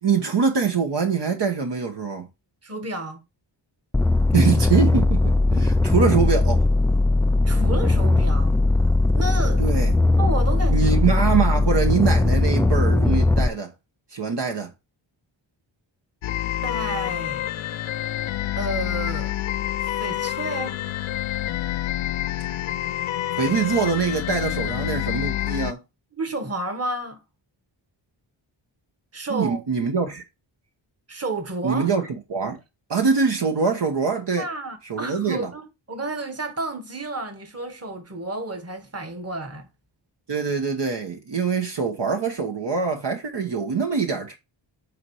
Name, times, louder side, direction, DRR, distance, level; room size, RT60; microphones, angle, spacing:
voice 1, 0.0-2.3 4.3-6.6 9.6-9.9 10.7-13.7 14.1-14.7 23.4-25.8 29.3-30.2 31.6-32.6 32.9-34.4 34.9-35.5 40.3-44.4, right 5 dB, 60° right, 1.2 m, -24 dB
voice 2, 2.6-3.2 7.4-8.5 9.1-9.7 10.2-11.0 16.6-17.4 18.6-19.3 19.8-20.8 26.1-27.2 29.1-29.6 31.1-31.9 34.4-39.7, right 2 dB, 30° right, 1.5 m, -31 dB
sound 1, 3.9-13.5, left 2 dB, 5° left, 0.3 m, -19 dB
sound 2, 16.2-25.7, left 13 dB, 75° left, 0.5 m, -27 dB
8.4 x 3.1 x 4.8 m
cardioid pair, 65°, 47 cm